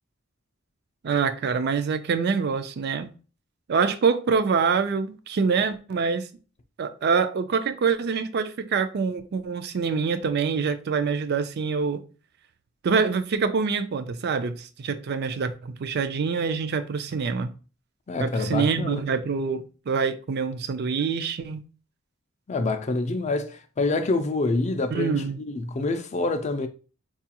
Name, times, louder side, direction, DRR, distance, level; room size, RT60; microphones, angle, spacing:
voice 1, 1.0-3.1 3.7-6.3 6.8-12.0 12.8-17.5 18.2-21.6 24.9-25.4, right 5 dB, 50° right, 0.4 m, -25 dB
voice 2, 18.1-19.0 22.5-26.7, left 3 dB, 35° left, 0.4 m, -26 dB
4.6 x 2.4 x 2.8 m
head